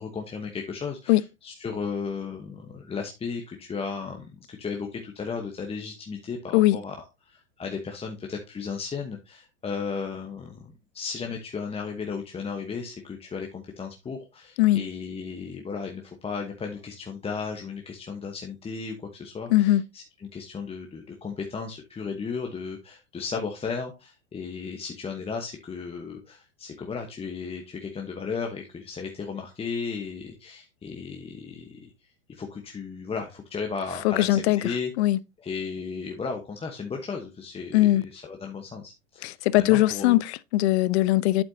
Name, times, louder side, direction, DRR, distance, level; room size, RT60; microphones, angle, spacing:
voice 1, 0.0-6.9 7.2-34.9 35.4-40.2, left 5 dB, 15° left, 1.1 m, -35 dB
voice 2, 19.5-19.8 34.0-34.6 35.0-35.2 37.7-38.0 39.2-41.4, left 16 dB, 60° left, 0.6 m, -20 dB
8.9 x 7.6 x 2.8 m
hypercardioid pair, 115°, 37 cm